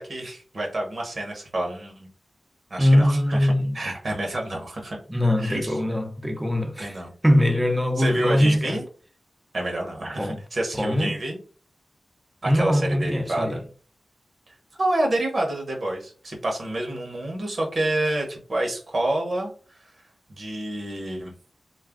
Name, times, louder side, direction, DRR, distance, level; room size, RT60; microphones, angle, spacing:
voice 1, 0.0-2.1 2.7-5.0 5.4-5.7 6.8-7.1 8.0-8.8 9.5-11.4 12.4-13.6 14.5-19.9 20.3-21.3, right 1 dB, 60° right, 0.9 m, -28 dB
voice 2, 2.8-3.8 5.1-8.8 10.2-10.4 10.7-11.2 12.5-13.5, left 1 dB, 10° right, 0.6 m, -22 dB
2.4 x 2.2 x 3.5 m
cardioid pair, 60°, 0 cm